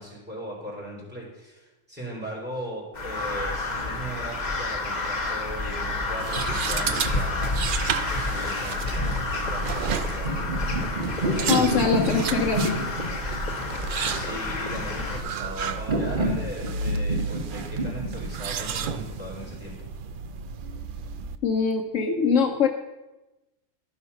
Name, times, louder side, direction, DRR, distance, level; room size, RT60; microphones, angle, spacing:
voice 1, 0.0-10.5 14.1-19.9, right 1 dB, 5° right, -4 dB, 3.6 m, -38 dB
Crow, 2.9-15.2, left 2 dB, 35° left, 1.1 m, -30 dB
sound 1, 5.9-21.4, right 4 dB, 65° right, 0.5 m, -32 dB
sound 2, 10.1-19.6, right 1 dB, 40° right, 1.5 m, -29 dB
voice 2, 11.5-12.7 21.4-22.7, left 5 dB, 70° left, 3 dB, 1.1 m, -23 dB
11.5 x 5.6 x 5.4 m, 1.0 s
omnidirectional pair, 1.4 m